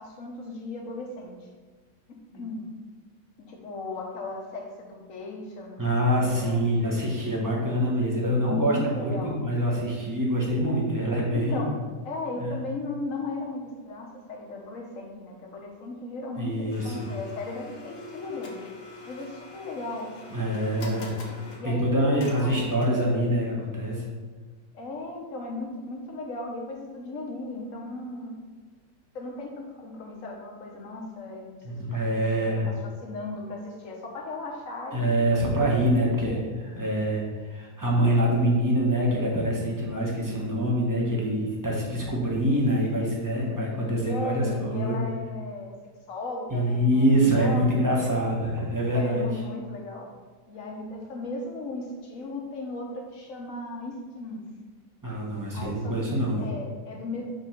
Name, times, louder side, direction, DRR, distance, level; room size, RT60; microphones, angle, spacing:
voice 1, 0.0-1.4 2.1-2.6 3.4-5.9 6.2-6.7 7.9-9.4 11.3-18.6 19.0-20.1 20.5-22.6 24.7-28.4 29.1-35.2 35.8-36.4 44.0-45.7 46.1-48.1 48.9-50.1 50.5-54.4 55.5-57.3, left 2 dB, 50° left, -1 dB, 1.3 m, -36 dB
voice 2, 5.8-11.7 12.4-12.6 16.4-17.1 20.3-21.1 21.6-24.0 31.6-32.7 34.9-45.0 46.5-49.3 55.0-56.4, equal, 15° right, -4 dB, 1.0 m, -25 dB
Domestic sounds home sounds, 16.7-23.2, left 2 dB, 85° left, 1.6 m, -45 dB
5.3 x 3.6 x 5.8 m, 1.3 s
omnidirectional pair, 2.0 m